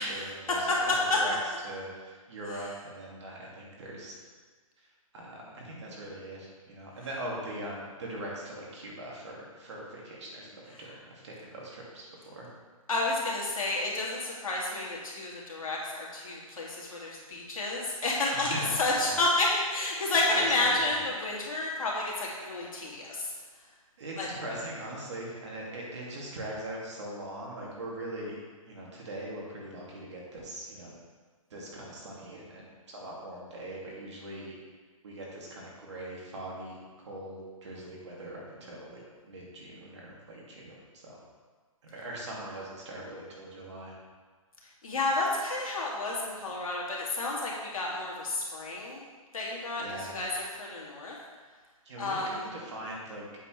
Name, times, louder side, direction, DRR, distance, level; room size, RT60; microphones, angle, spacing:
voice 1, 0.0-1.4 1.6-4.2 4.8-4.9 5.1-12.5 18.3-19.2 20.3-21.0 24.0-28.4 28.7-30.9 31.5-34.6 35.0-36.8 37.0-41.2 41.8-43.9 49.8-50.2 51.8-53.3, right 1 dB, 55° right, -3 dB, 2.4 m, -41 dB
voice 2, 12.9-23.3 24.2-24.3 44.8-49.0 49.3-51.2 52.0-52.5, left 2 dB, 70° left, -4 dB, 2.5 m, -30 dB
8.1 x 6.9 x 3.3 m, 1.5 s
hypercardioid pair, 150°, 18 cm